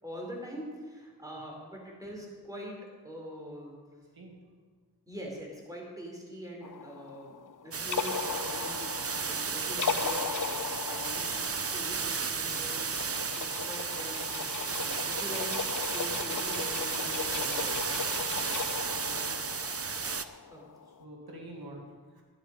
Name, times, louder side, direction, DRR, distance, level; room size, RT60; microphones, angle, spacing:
voice 1, 0.0-2.8 3.0-3.8 5.1-7.4 7.6-8.9 9.2-11.5 11.7-12.7 13.3-17.9 20.5-20.6, equal, 10° right, -2 dB, 3.9 m, -43 dB
voice 2, 3.9-4.3 19.0-19.6 21.0-22.2, right 1 dB, 85° right, 0 dB, 1.8 m, -47 dB
sound 1, 6.6-21.0, left 6 dB, 60° left, 0.6 m, -38 dB
sound 2, 7.7-20.2, right 5 dB, 40° right, 0.6 m, -33 dB
12.0 x 10.5 x 5.2 m, 1.5 s
wide cardioid pair, 50°, 36 cm